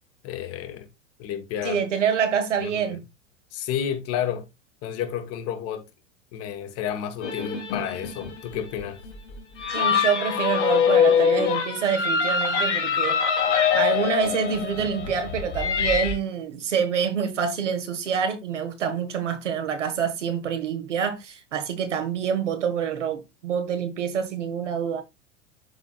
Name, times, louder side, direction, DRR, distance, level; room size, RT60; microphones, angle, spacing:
voice 1, 0.2-0.9 1.2-1.8 2.6-3.0 3.5-4.5 4.8-5.8 6.3-9.0, left 9 dB, 40° left, 1.5 m, -31 dB
voice 2, 1.6-3.0 9.7-13.3 13.7-25.0, right 7 dB, 75° right, 1.6 m, -26 dB
sound 1, 7.2-16.1, left 7 dB, 70° left, 2.6 m, -24 dB
12.0 x 4.0 x 2.3 m
hypercardioid pair, 95°, 37 cm